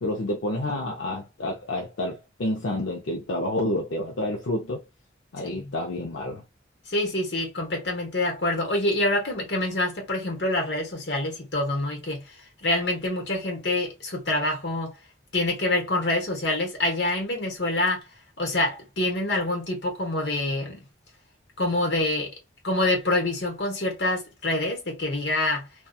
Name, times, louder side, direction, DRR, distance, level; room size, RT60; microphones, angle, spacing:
voice 1, 0.0-4.8 5.3-6.4, left 1 dB, 85° left, 0.6 m, -29 dB
voice 2, 5.4-5.7 6.9-12.3 12.6-14.9 15.3-18.0 18.4-20.8 21.6-22.3 22.6-25.7, left 2 dB, 65° left, 1.1 m, -26 dB
2.7 x 2.3 x 2.3 m
head